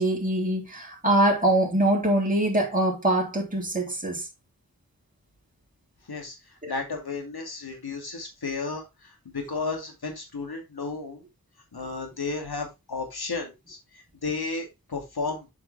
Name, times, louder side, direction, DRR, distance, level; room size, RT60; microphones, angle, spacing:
voice 1, 0.0-4.3 6.6-6.7, right 1 dB, 20° right, 3.3 m, -23 dB
voice 2, 6.1-11.2 11.7-15.5, left 4 dB, 80° left, 2.4 m, -33 dB
7.7 x 5.8 x 3.3 m
wide cardioid pair, 45°, 37 cm